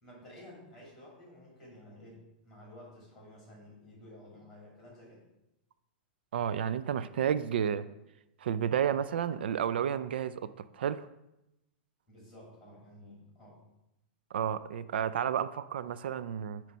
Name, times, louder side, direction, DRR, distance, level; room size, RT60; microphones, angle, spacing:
voice 1, 0.0-5.2 12.1-13.6, left 1 dB, 5° left, -3 dB, 2.4 m, -52 dB
voice 2, 6.3-7.8 8.4-11.1 14.3-16.6, right 9 dB, 90° right, 13 dB, 0.4 m, -31 dB
9.2 x 3.1 x 5.6 m, 0.90 s
supercardioid pair, 180°, 5 cm